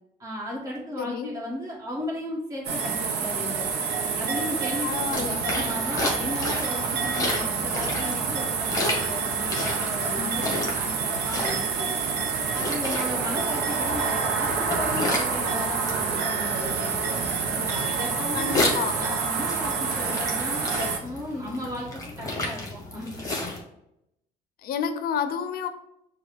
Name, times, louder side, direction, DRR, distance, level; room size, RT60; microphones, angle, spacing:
voice 1, 0.2-3.6 4.2-11.9 12.5-16.9 17.5-23.5, left 1 dB, 20° right, -5 dB, 1.6 m, -35 dB
voice 2, 1.0-1.3 4.8-5.7 10.2-10.5 18.3-19.0 24.6-25.7, left 7 dB, 60° left, 9 dB, 0.5 m, -30 dB
sound 1, 2.6-21.0, right 5 dB, 80° right, 0.7 m, -28 dB
sound 2, 5.1-23.6, left 2 dB, 20° left, 1.2 m, -33 dB
5.9 x 2.3 x 3.4 m, 0.81 s
cardioid pair, 110°, 17 cm